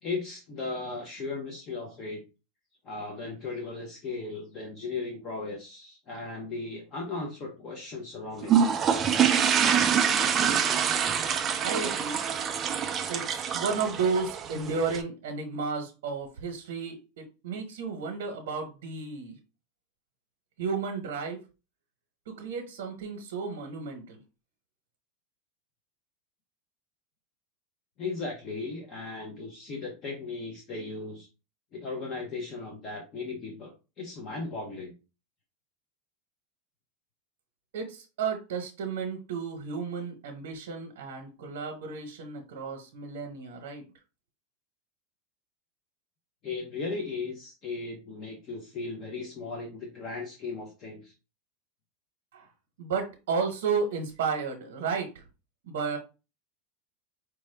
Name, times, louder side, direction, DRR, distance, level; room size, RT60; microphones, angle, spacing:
voice 1, 0.0-2.2 2.8-8.7 28.0-31.3 31.7-34.9 46.4-51.1, left 3 dB, 30° left, 1 dB, 0.7 m, -37 dB
sound 1, 8.4-15.0, right 7 dB, 20° right, 0.3 m, -25 dB
voice 2, 11.6-12.2 13.1-19.4 20.6-21.4 22.3-24.2 37.7-43.8 52.3-52.5 52.8-55.2 55.6-56.0, right 5 dB, 85° right, 3 dB, 0.8 m, -33 dB
4.7 x 2.2 x 3.2 m, 0.30 s
supercardioid pair, 170°, 0 cm